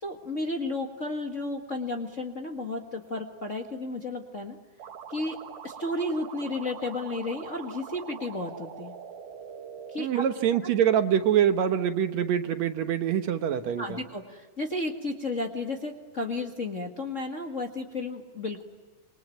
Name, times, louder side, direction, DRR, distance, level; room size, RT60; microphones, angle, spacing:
voice 1, 0.0-4.6 5.1-5.4 5.6-8.9 9.9-10.2 10.6-10.7 13.8-18.6, left 2 dB, 30° left, 2 dB, 1.6 m, -33 dB
sound 1, 4.8-10.0, right 7 dB, 80° right, 3.1 m, -43 dB
voice 2, 10.0-14.0, right 9 dB, 65° right, 8 dB, 2.2 m, -25 dB
27.0 x 24.0 x 9.2 m, 1.3 s
omnidirectional pair, 3.6 m